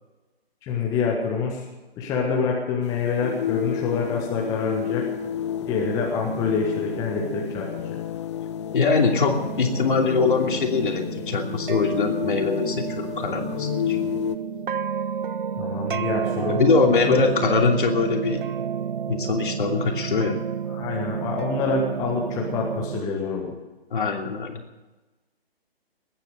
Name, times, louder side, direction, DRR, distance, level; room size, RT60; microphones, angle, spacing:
voice 1, 0.6-1.7 2.0-5.1 5.7-8.0 15.6-16.6 17.1-17.2 20.7-23.5, left 4 dB, 10° left, -1 dB, 1.4 m, -26 dB
sound 1, 2.8-14.4, left 10 dB, 30° left, 0.8 m, -31 dB
voice 2, 8.7-14.0 16.6-18.4 19.1-20.4 23.9-24.6, left 4 dB, 55° left, 3 dB, 2.9 m, -22 dB
sound 2, 8.9-23.0, right 8 dB, 55° right, 0.5 m, -31 dB
20.5 x 9.2 x 6.6 m, 1.1 s
figure-of-eight pair, 150°, 31 cm